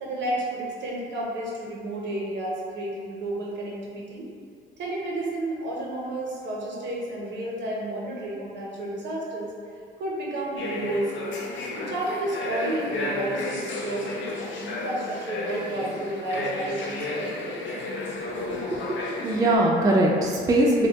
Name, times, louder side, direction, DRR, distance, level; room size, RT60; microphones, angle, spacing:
voice 1, 0.0-4.3 4.8-9.5 10.0-11.3 11.8-17.9, right 1 dB, 65° right, -4 dB, 0.7 m, -31 dB
sound 1, 10.6-19.6, left 2 dB, 70° left, 0.4 m, -32 dB
voice 2, 18.4-19.0 19.2-20.9, right 1 dB, 20° right, -3 dB, 0.3 m, -21 dB
2.7 x 2.1 x 2.7 m, 2.1 s
cardioid pair, 90°, 20 cm